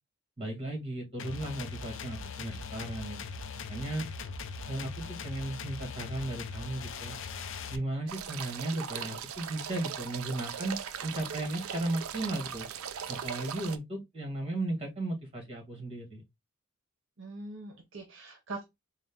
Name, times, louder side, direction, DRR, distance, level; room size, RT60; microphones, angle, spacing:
voice 1, 0.4-3.4 3.7-4.1 4.7-7.2 7.7-12.7 13.1-16.2, right 1 dB, 30° right, 1.9 m, -35 dB
sound 1, 1.2-7.8, left 5 dB, 60° left, 0.5 m, -40 dB
sound 2, 8.1-13.8, right 8 dB, 80° right, 0.5 m, -39 dB
voice 2, 17.2-18.6, right 3 dB, 60° right, 0.9 m, -42 dB
4.0 x 2.3 x 3.5 m
head